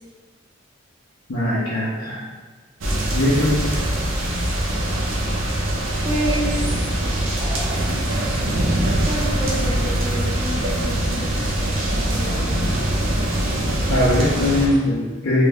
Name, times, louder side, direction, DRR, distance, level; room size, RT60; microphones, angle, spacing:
voice 1, 1.3-2.2 3.1-3.6 13.9-15.4, left 1 dB, 75° left, -9 dB, 0.5 m, -20 dB
sound 1, 2.8-14.7, right 1 dB, 75° right, 0.5 m, -22 dB
voice 2, 6.0-6.6 7.4-8.1 9.0-11.3 12.1-12.5, right 1 dB, 25° right, -4 dB, 0.5 m, -29 dB
2.6 x 2.1 x 3.4 m, 1.4 s
head